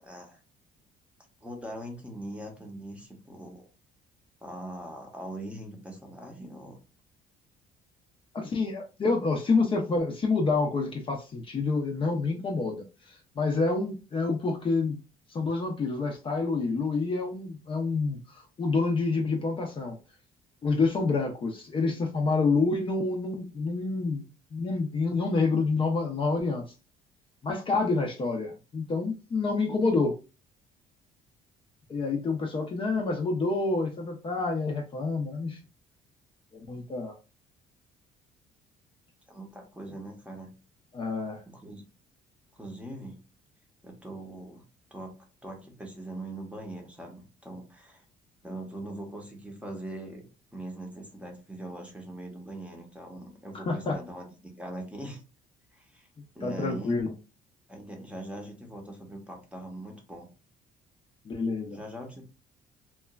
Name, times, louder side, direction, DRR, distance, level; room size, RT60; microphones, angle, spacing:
voice 1, 0.0-0.4 1.4-3.7 4.4-6.8 39.3-40.5 41.5-41.8 42.5-43.2 43.8-44.6 44.9-45.2 45.4-48.0 48.4-50.2 50.5-55.2 55.7-56.1 56.3-57.0 57.7-60.3 61.7-62.2, right 1 dB, 5° right, 2 dB, 0.8 m, -41 dB
voice 2, 8.3-15.0 15.3-20.0 20.6-26.7 27.4-30.1 31.9-35.6 36.5-37.2 40.9-41.4 53.5-54.0 56.4-57.1 61.2-61.8, left 3 dB, 30° left, 2 dB, 0.5 m, -28 dB
2.9 x 2.2 x 2.2 m, 0.31 s
cardioid pair, 110°, 17 cm